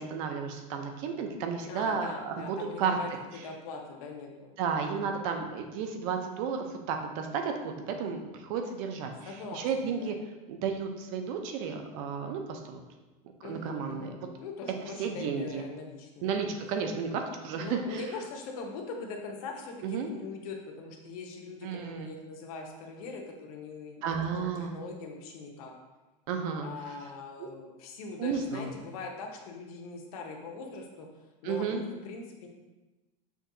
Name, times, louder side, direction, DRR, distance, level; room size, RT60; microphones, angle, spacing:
voice 1, 0.0-3.0 4.6-9.1 9.5-10.2 10.5-12.8 13.4-14.1 15.0-15.6 16.2-18.0 19.8-20.1 21.6-22.1 24.0-24.8 26.3-26.7 27.4-27.5 28.2-28.7 31.4-31.8, right 6 dB, 70° right, 5 dB, 0.6 m, -32 dB
voice 2, 1.7-3.1 3.4-5.3 9.2-10.2 13.4-14.1 14.4-16.3 17.6-25.7 26.6-31.1 31.4-32.5, left 4 dB, 85° left, 1 dB, 0.8 m, -42 dB
6.0 x 2.7 x 2.6 m, 1.1 s
supercardioid pair, 145°, 18 cm